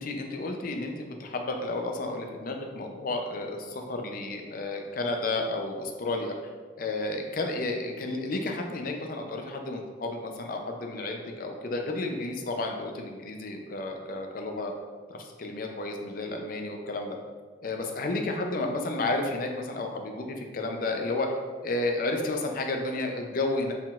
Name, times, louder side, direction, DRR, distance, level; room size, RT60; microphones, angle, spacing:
voice 1, 0.0-6.4 6.8-14.7 15.1-17.2 17.6-21.3 21.6-23.7, left 2 dB, 45° left, 3 dB, 0.4 m, -32 dB
4.4 x 3.7 x 2.4 m, 1.5 s
head